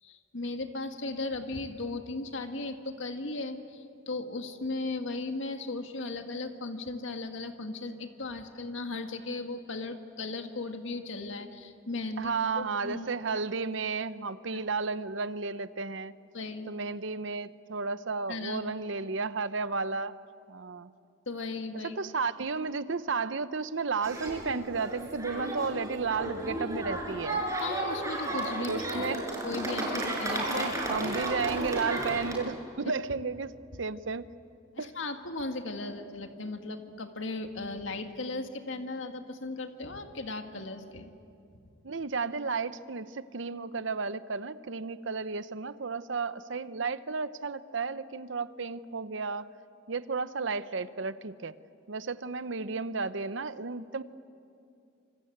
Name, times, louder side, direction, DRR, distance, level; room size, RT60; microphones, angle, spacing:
voice 1, 0.0-12.3 12.6-13.1 14.5-14.6 16.3-16.7 18.3-18.6 21.3-21.9 27.6-29.1 29.4-31.0 34.8-41.1, left 2 dB, 70° left, 6 dB, 1.8 m, -37 dB
voice 2, 12.2-16.1 16.7-20.2 20.5-20.9 21.8-27.4 28.7-29.3 30.5-34.3 34.8-34.9 41.8-49.5 49.9-51.6 51.9-54.0, right 4 dB, 65° right, 14 dB, 0.8 m, -33 dB
sound 1, 24.0-32.3, right 1 dB, 15° right, 5.9 m, -33 dB
26.5 x 25.5 x 8.0 m, 2.5 s
head